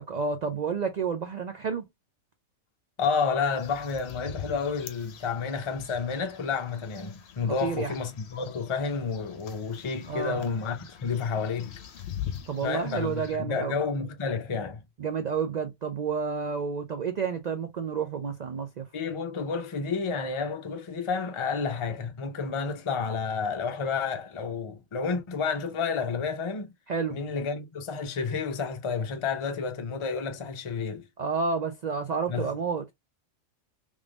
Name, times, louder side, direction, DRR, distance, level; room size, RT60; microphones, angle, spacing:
voice 1, 0.0-1.8 7.6-7.9 10.1-10.4 12.5-13.8 15.0-18.9 26.9-27.2 31.2-32.9, right 5 dB, 70° right, 0.4 m, -30 dB
voice 2, 3.0-11.8 12.6-14.8 18.9-26.7 27.1-31.0 32.3-32.5, left 5 dB, 30° left, 0.6 m, -30 dB
sound 1, 3.4-13.4, left 9 dB, 60° left, 0.9 m, -43 dB
3.4 x 3.4 x 2.4 m
omnidirectional pair, 1.4 m